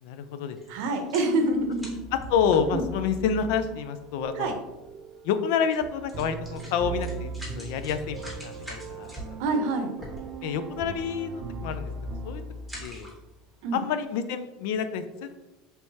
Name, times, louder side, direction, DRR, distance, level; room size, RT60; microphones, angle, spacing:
voice 1, 0.0-0.6 2.3-4.5 5.2-9.1 10.4-11.9 12.2-12.4 12.8-13.1 13.7-15.3, left 7 dB, 70° left, 10 dB, 0.4 m, -28 dB
sound 1, 0.6-3.3 4.1-4.2 4.5-4.6 5.6-5.8 6.1-10.6 11.1-11.3 11.6-12.0 12.5-13.5 13.9-14.0, equal, ahead, 1.1 m, -45 dB
voice 2, 0.7-2.0 2.7-2.8 4.3-4.5 9.4-9.9 13.6-13.8, right 2 dB, 70° right, 5 dB, 0.7 m, -26 dB
sound 2, 1.4-13.5, right 3 dB, 35° right, 0.4 m, -39 dB
4.6 x 3.3 x 2.8 m, 1.0 s
cardioid pair, 155°, 0 cm